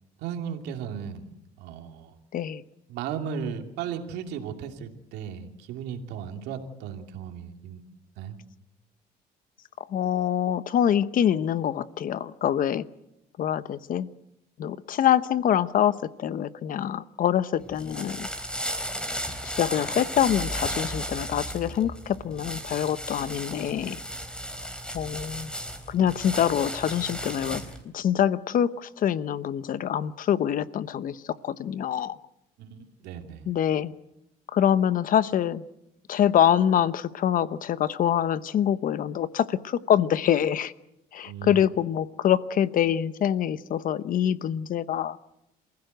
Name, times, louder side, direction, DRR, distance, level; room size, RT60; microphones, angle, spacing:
voice 1, 0.2-1.3 1.6-2.1 2.9-7.8 8.2-8.4 32.6-33.5 41.2-41.7, right 7 dB, 90° right, 4 dB, 2.7 m, -36 dB
voice 2, 9.9-12.8 13.4-14.1 14.6-18.3 19.4-24.0 24.9-25.5 25.9-27.6 27.9-32.2 33.5-33.9 34.5-35.6 36.1-40.7 41.1-45.2, left 10 dB, 55° left, 15 dB, 1.0 m, -25 dB
sound 1, 17.6-27.8, equal, 5° left, 3.6 m, -34 dB
28.0 x 15.5 x 8.0 m, 0.84 s
cardioid pair, 110°, 17 cm